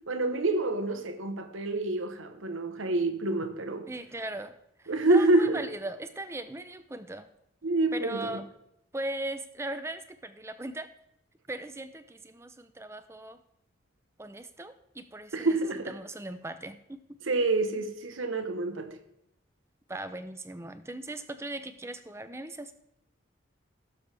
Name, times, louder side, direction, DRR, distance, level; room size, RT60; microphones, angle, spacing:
voice 1, 0.1-3.9 4.9-5.6 7.6-8.4 15.3-15.9 17.3-18.9, right 2 dB, 80° right, 1.1 m, -27 dB
voice 2, 3.9-4.5 4.8-7.3 7.9-8.5 8.9-10.9 11.5-13.4 14.2-15.6 15.9-17.0 19.9-22.7, right 1 dB, 15° right, 0.5 m, -38 dB
16.5 x 7.1 x 3.4 m
head